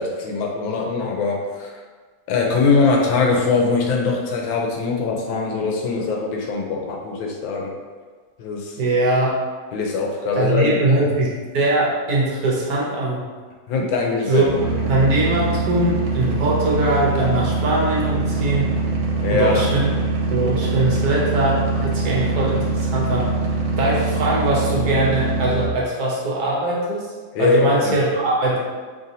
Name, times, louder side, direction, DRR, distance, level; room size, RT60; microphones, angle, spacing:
voice 1, 0.0-1.7 2.3-7.7 8.4-8.7 9.7-10.8 13.7-14.5 19.2-19.6 27.3-27.9, left 4 dB, 90° left, 0 dB, 1.4 m, -21 dB
voice 2, 8.8-9.4 10.3-13.2 14.3-14.4 14.9-18.7 19.3-19.9 20.3-23.3 23.8-27.1 27.4-28.6, right 2 dB, 65° right, -5 dB, 1.1 m, -21 dB
sound 1, 14.4-25.7, right 3 dB, 80° right, 1.3 m, -23 dB
3.9 x 3.4 x 2.7 m, 1.4 s
omnidirectional pair, 2.0 m